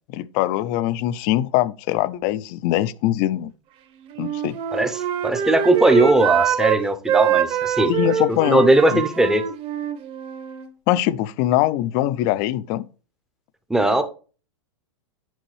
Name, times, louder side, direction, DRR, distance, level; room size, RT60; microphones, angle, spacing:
voice 1, 0.1-3.5 4.2-4.6 7.9-8.7 8.9-9.0 10.9-12.8, left 14 dB, 40° left, 0.4 m, -22 dB
Wind instrument woodwind instrument, 4.1-6.8 7.1-10.7, right 9 dB, 35° right, 0.9 m, -24 dB
voice 2, 4.7-7.9 8.5-9.4 13.7-14.0, right 2 dB, 5° right, 0.6 m, -18 dB
9.0 x 5.2 x 3.2 m
hypercardioid pair, 135°, 16 cm